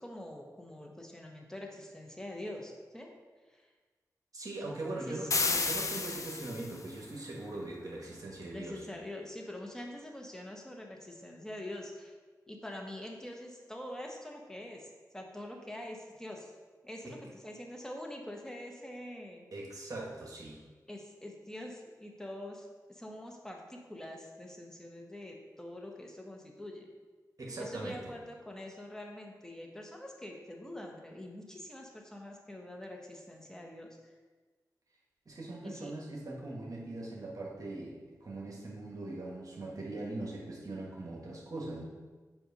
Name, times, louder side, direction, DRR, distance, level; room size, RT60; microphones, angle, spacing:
voice 1, 0.0-3.1 3.5-3.7 5.1-5.3 8.4-12.1 12.5-16.5 16.8-19.5 20.9-26.9 27.6-34.1 35.6-35.9, left 1 dB, 10° left, 1 dB, 1.0 m, -45 dB
voice 2, 4.3-8.8 17.0-17.2 19.5-20.6 27.4-28.1 35.3-41.8, right 2 dB, 60° right, -2 dB, 1.1 m, -41 dB
sound 1, 5.3-6.9, left 3 dB, 55° left, 0.5 m, -31 dB
7.7 x 2.6 x 5.2 m, 1.4 s
cardioid pair, 65°, 7 cm